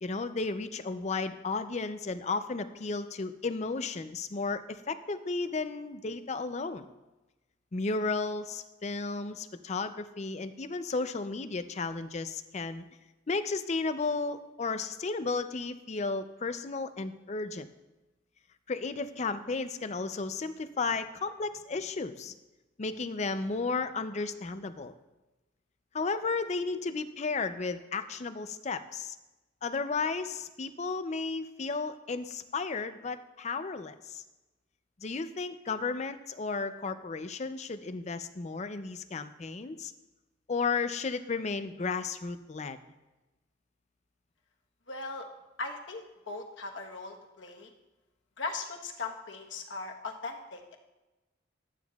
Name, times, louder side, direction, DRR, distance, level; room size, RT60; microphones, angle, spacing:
voice 1, 0.0-6.9 7.7-12.8 13.3-17.7 18.7-22.4 22.8-24.9 25.9-29.2 29.6-34.2 35.0-39.9 40.5-42.8, left 4 dB, 35° left, 10 dB, 0.5 m, -33 dB
voice 2, 44.9-45.3 45.6-47.7 48.4-50.8, left 3 dB, 70° left, 1 dB, 1.2 m, -39 dB
13.5 x 9.1 x 2.4 m, 1.1 s
head